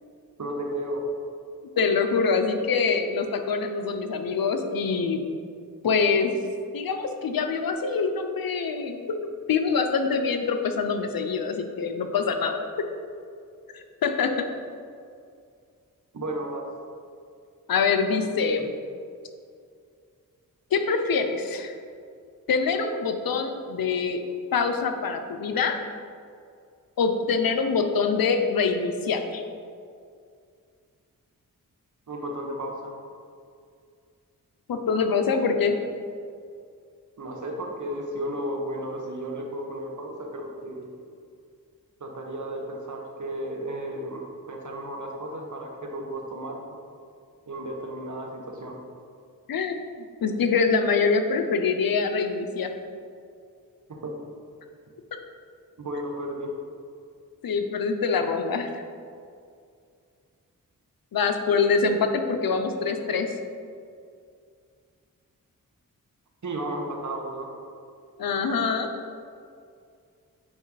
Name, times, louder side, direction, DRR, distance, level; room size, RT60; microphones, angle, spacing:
voice 1, 0.4-1.0 16.1-16.7 32.1-32.9 37.2-40.8 42.0-46.6 47.5-48.8 53.9-54.1 55.8-56.5 66.4-67.5, right 1 dB, 60° right, 1 dB, 1.4 m, -33 dB
voice 2, 1.8-5.2 5.8-6.3 6.7-12.6 13.7-14.5 17.7-18.7 20.7-21.8 22.5-24.2 24.5-25.8 27.0-29.4 34.7-35.8 49.5-49.9 50.2-52.7 57.4-58.8 61.1-63.3 68.2-68.9, left 5 dB, 85° left, 6 dB, 0.8 m, -25 dB
8.8 x 5.6 x 4.0 m, 2.3 s
cardioid pair, 60°, 34 cm